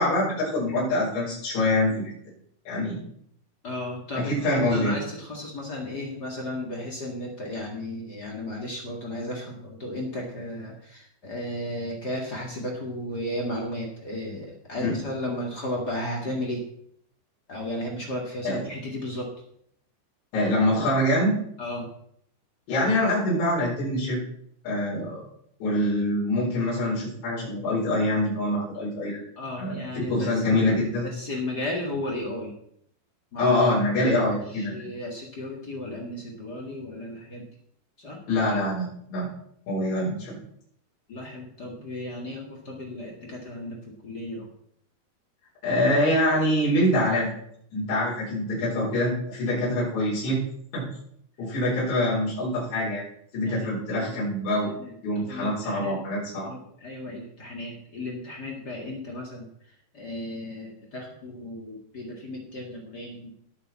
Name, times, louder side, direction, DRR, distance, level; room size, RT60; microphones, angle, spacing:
voice 1, 0.0-2.0 2.7-3.0 4.1-5.0 14.8-14.9 18.4-18.6 20.3-21.4 22.7-24.2 24.6-25.2 25.6-29.2 29.6-31.1 33.4-34.9 38.3-39.3 39.7-40.4 45.6-47.3 47.7-50.4 50.7-50.9 51.4-53.0 53.3-54.7 55.0-56.5, left 1 dB, 80° left, -7 dB, 6.8 m, -25 dB
voice 2, 3.6-16.6 17.5-19.3 21.6-21.9 29.4-30.8 31.1-32.5 33.3-33.5 34.0-34.1 34.5-37.4 38.0-38.2 41.1-44.5 53.4-54.3 54.8-56.0 56.4-59.5 59.9-63.3, left 1 dB, 40° left, -1 dB, 1.4 m, -34 dB
19.0 x 6.8 x 4.2 m, 0.70 s
omnidirectional pair, 5.0 m